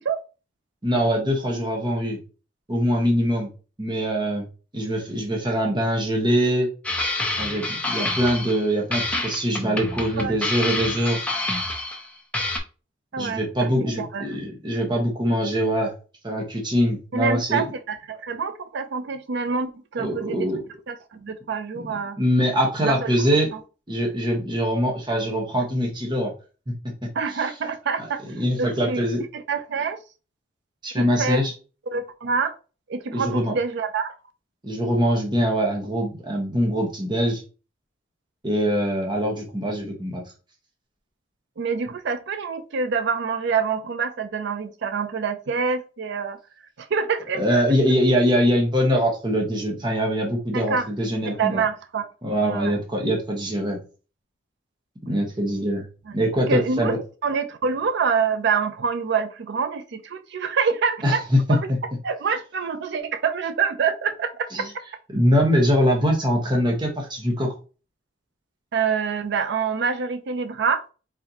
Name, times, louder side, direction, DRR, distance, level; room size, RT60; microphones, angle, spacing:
voice 1, 0.8-2.2 2.7-3.5 3.8-4.5 4.7-6.7 7.4-11.3 13.2-15.9 16.2-17.6 20.0-20.6 21.7-21.9 22.2-23.5 23.9-26.3 26.7-27.5 28.4-29.2 30.8-31.5 33.1-33.5 34.6-37.4 38.4-40.2 47.3-51.6 52.2-53.8 55.1-55.8 56.1-57.0 61.0-61.4 61.7-61.8 64.5-64.7 65.1-67.5, equal, 25° right, 0 dB, 1.1 m, -23 dB
sound 1, 6.8-8.6 8.9-12.1 12.3-12.6, left 2 dB, 5° left, 0.8 m, -27 dB
voice 2, 13.1-13.7 14.0-14.4 17.1-20.5 20.9-22.2 22.8-23.1 27.1-28.2 28.6-29.0 29.3-30.0 30.9-31.4 31.9-32.5 32.9-34.1 41.6-46.4 46.8-47.6 50.5-50.9 51.2-52.1 52.4-52.8 56.1-56.2 56.5-56.9 57.2-61.2 61.5-61.6 62.0-64.7 68.7-70.8, right 5 dB, 60° right, 9 dB, 0.5 m, -26 dB
4.2 x 4.0 x 2.9 m, 0.34 s
head